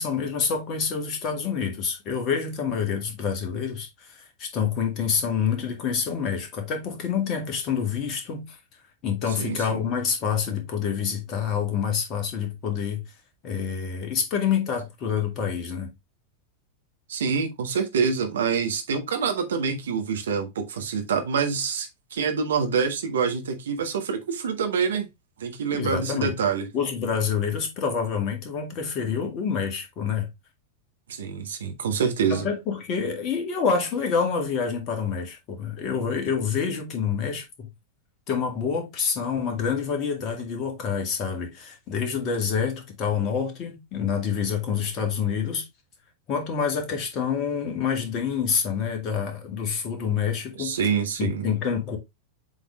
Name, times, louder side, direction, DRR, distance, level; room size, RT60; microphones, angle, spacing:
voice 1, 0.0-8.6 9.0-13.0 13.4-15.9 25.7-26.4 26.7-30.3 32.3-37.7 38.3-45.7 46.3-50.8 51.2-52.0, left 6 dB, 35° left, 2.2 m, -27 dB
voice 2, 9.4-9.8 17.1-25.1 25.4-26.7 31.1-32.5 50.6-51.5, right 6 dB, 65° right, 1.4 m, -26 dB
7.7 x 4.1 x 3.1 m
figure-of-eight pair, 90°, 0 cm